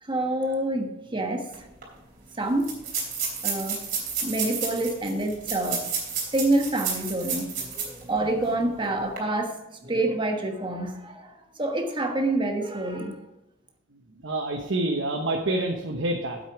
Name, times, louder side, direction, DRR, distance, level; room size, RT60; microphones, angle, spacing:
voice 1, 0.0-1.5 2.4-2.7 3.4-3.8 4.2-5.9 6.3-9.6 9.8-13.2, right 1 dB, 25° right, 3 dB, 1.3 m, -27 dB
sound 1, 1.5-1.6 1.8-1.9 2.6-8.0 8.4-8.5 9.0-9.2, right 6 dB, 50° right, 3.3 m, -31 dB
voice 2, 14.2-16.4, right 2 dB, 80° right, 2 dB, 1.0 m, -27 dB
9.3 x 8.1 x 4.7 m, 0.97 s
head